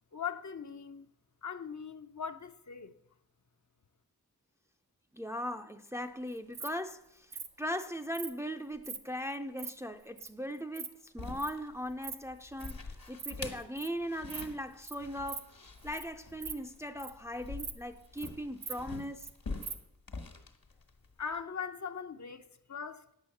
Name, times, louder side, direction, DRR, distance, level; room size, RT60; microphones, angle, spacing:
voice 1, 0.1-1.1 1.4-3.0 21.2-23.1, left 6 dB, 50° left, 0.7 m, -40 dB
voice 2, 5.1-7.3 7.6-15.5 15.8-19.3, equal, 10° right, 0.5 m, -39 dB
Insect, 6.3-6.7 7.3-7.5 8.1-8.3 8.8-9.0 9.3-9.7 10.2-10.3 10.5-10.9 11.4-11.5 11.9-12.2 12.4-12.7 13.1-13.3 13.6-13.9 14.3-14.5 14.8-14.9 15.3-15.4 15.8-16.0 16.3-17.2 17.6-17.7 18.0-18.3 18.6-19.3 19.6-19.7, right 6 dB, 80° right, 0.9 m, -41 dB
sound 1, 11.2-21.4, left 3 dB, 65° left, 1.5 m, -45 dB
9.5 x 8.0 x 7.1 m
wide cardioid pair, 85°, 37 cm